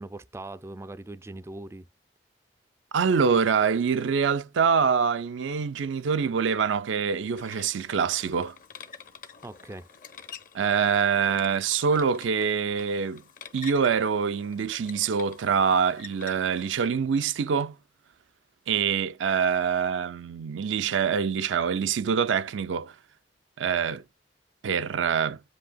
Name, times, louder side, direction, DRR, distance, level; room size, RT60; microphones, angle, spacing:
voice 1, 0.0-1.8 9.4-9.9, right 2 dB, 15° right, 0.3 m, -40 dB
voice 2, 2.9-8.6 10.5-13.2 13.5-17.7 18.7-22.9 23.6-24.0 24.6-25.4, right 6 dB, 85° right, 0.4 m, -25 dB
sound 1, 7.4-16.9, left 7 dB, 45° left, 0.8 m, -48 dB
7.7 x 2.7 x 2.2 m
head